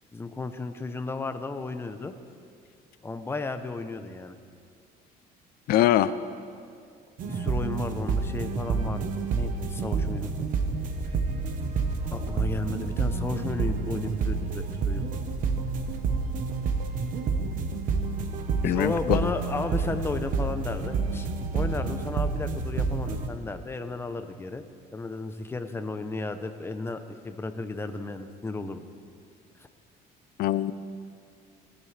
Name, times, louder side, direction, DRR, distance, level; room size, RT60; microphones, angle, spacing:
voice 1, 0.1-2.1 3.0-4.4 7.2-10.3 12.1-15.0 18.6-21.3 21.5-24.6 24.9-28.9, left 3 dB, 15° left, 8 dB, 0.7 m, -34 dB
voice 2, 5.7-6.1 18.6-19.3 30.4-30.7, left 13 dB, 65° left, 15 dB, 0.5 m, -23 dB
sound 1, 7.2-23.3, right 4 dB, 55° right, 1.1 m, -29 dB
19.5 x 14.0 x 3.4 m, 2.4 s
cardioid pair, 140°, 17 cm